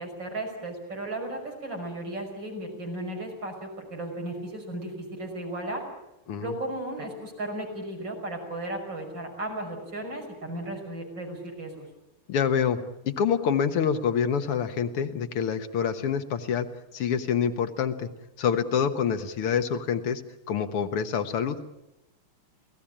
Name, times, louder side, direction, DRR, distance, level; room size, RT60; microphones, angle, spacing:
voice 1, 0.0-5.8 6.4-11.9, right 1 dB, 55° right, 1 dB, 6.5 m, -35 dB
voice 2, 12.3-16.7 16.9-18.1 18.4-20.2 20.5-21.6, left 7 dB, 90° left, 9 dB, 2.2 m, -26 dB
27.5 x 17.5 x 8.8 m, 0.96 s
omnidirectional pair, 2.4 m